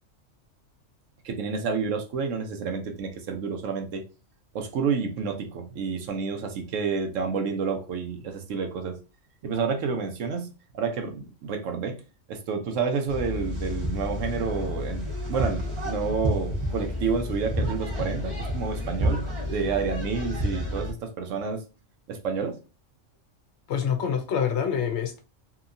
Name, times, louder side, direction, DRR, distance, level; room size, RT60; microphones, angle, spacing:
voice 1, 1.2-4.0 4.5-9.0 9.4-12.0 12.3-21.6 22.1-22.6, right 5 dB, 80° right, 1.0 m, -29 dB
sound 1, 13.1-20.9, equal, 30° right, 0.8 m, -30 dB
voice 2, 23.7-25.2, left 7 dB, 65° left, 0.9 m, -26 dB
2.8 x 2.8 x 2.5 m
omnidirectional pair, 1.3 m